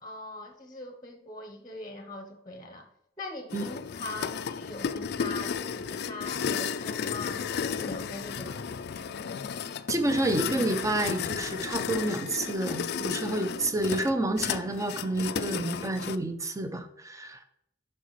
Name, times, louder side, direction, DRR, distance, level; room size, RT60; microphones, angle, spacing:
voice 1, 0.0-2.9 3.2-8.7, left 2 dB, 20° left, 5 dB, 0.9 m, -41 dB
sound 1, 3.5-16.2, left 6 dB, 55° left, 0.4 m, -33 dB
voice 2, 9.9-17.4, right 1 dB, 15° right, 8 dB, 0.6 m, -29 dB
9.7 x 5.7 x 3.1 m, 0.78 s
head